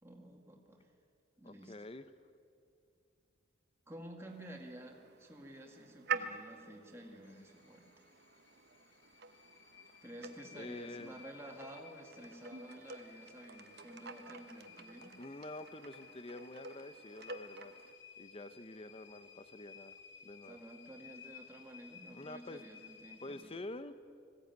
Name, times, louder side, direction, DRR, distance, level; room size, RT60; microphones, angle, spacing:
voice 1, 0.0-0.9 1.4-1.7 3.9-8.0 10.0-15.1 20.4-23.5, right 1 dB, 10° right, 0 dB, 2.1 m, -51 dB
voice 2, 1.4-2.1 10.5-11.2 15.2-20.0 20.2-20.6 22.1-22.7 23.2-23.9, left 2 dB, 25° left, 12 dB, 0.6 m, -47 dB
sound 1, 4.3-17.9, right 6 dB, 50° right, 1.0 m, -48 dB
sound 2, 7.2-23.4, left 7 dB, 60° left, 1.5 m, -58 dB
20.0 x 16.0 x 9.3 m, 2.4 s
head